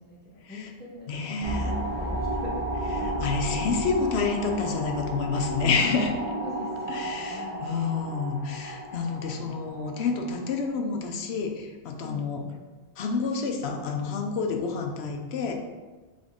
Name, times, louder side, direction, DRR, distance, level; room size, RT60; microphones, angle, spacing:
voice 1, 0.0-2.6 2.9-3.2 3.5-3.6 6.3-7.7 8.9-10.1 12.0-12.6, left 2 dB, 10° left, -6 dB, 1.1 m, -44 dB
voice 2, 1.1-1.7 3.0-6.1 6.9-12.4 13.0-15.5, left 4 dB, 75° left, 3 dB, 0.9 m, -29 dB
sound 1, 1.4-10.7, right 1 dB, 10° right, 0.9 m, -33 dB
3.9 x 3.6 x 3.6 m, 1.3 s
omnidirectional pair, 1.1 m